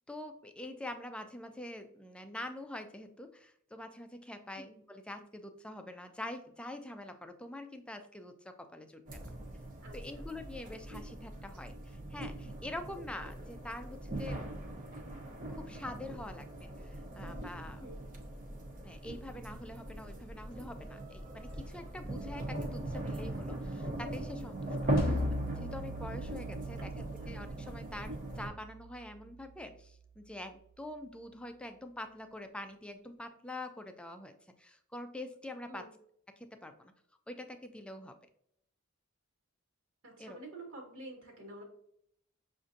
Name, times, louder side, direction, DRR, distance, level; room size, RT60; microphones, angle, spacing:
voice 1, 0.1-9.2 9.9-14.5 15.5-17.8 18.8-24.9 25.6-35.9 36.4-36.9 37.3-38.2 40.2-40.4, left 1 dB, 5° left, 7 dB, 0.3 m, -45 dB
sound 1, 9.1-28.5, right 1 dB, 40° right, 0.7 m, -40 dB
voice 2, 9.8-10.3 17.8-18.1 25.0-25.3 26.8-27.3 35.7-35.9 40.0-41.6, right 1 dB, 65° right, 0 dB, 1.4 m, -49 dB
sound 2, 25.0-30.1, left 1 dB, 45° left, 0.7 m, -40 dB
6.2 x 2.5 x 2.6 m, 0.69 s
head